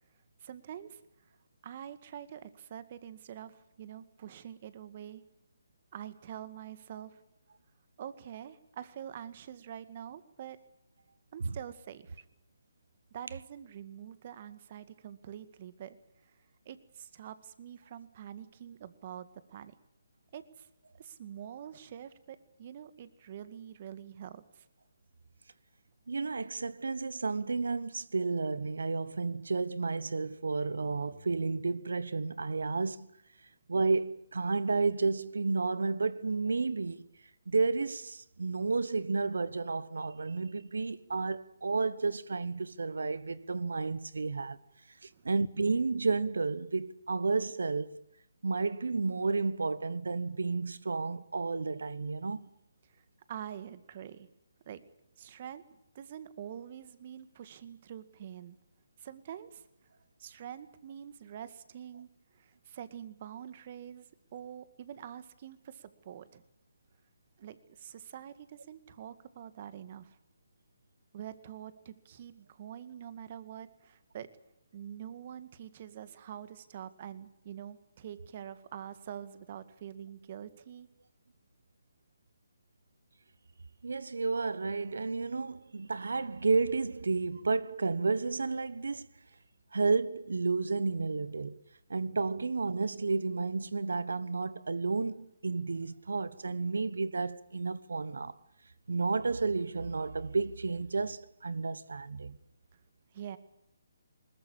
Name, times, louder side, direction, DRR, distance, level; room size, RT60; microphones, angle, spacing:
voice 1, 0.4-1.0 1.6-5.2 5.9-7.2 8.0-10.6 11.3-12.3 13.1-16.0 16.2-16.4 16.7-19.7 20.3-20.7 21.0-24.7 45.1-45.3 52.9-53.0 53.3-54.3 54.7-54.8 55.2-58.6 59.0-59.6 60.2-62.1 62.3-66.4 67.4-70.2 71.1-74.3 74.7-80.9 103.1-103.4, right 9 dB, 40° right, 2.0 m, -45 dB
voice 2, 26.1-33.1 33.7-37.1 37.5-44.6 45.0-48.1 48.4-52.4 83.8-89.1 89.7-91.6 91.9-98.3 98.9-102.4, right 4 dB, 75° right, 1.1 m, -31 dB
21.0 x 20.5 x 8.6 m
figure-of-eight pair, 150°, 0 cm